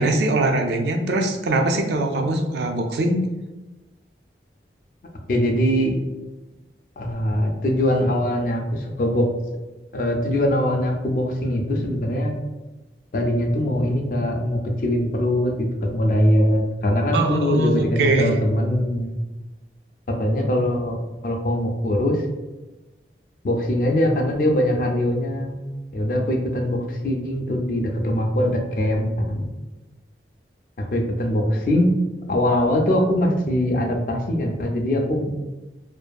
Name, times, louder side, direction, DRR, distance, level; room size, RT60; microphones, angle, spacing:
voice 1, 0.0-3.2 17.1-18.4, right 2 dB, 70° right, 4 dB, 0.3 m, -22 dB
voice 2, 5.3-5.9 7.0-9.3 9.9-12.3 13.1-19.2 20.1-21.0 21.2-22.2 23.4-25.6 25.9-29.5 30.8-31.9 32.3-35.3, left 1 dB, 50° left, 1 dB, 0.3 m, -22 dB
2.6 x 2.5 x 2.2 m, 1.1 s
head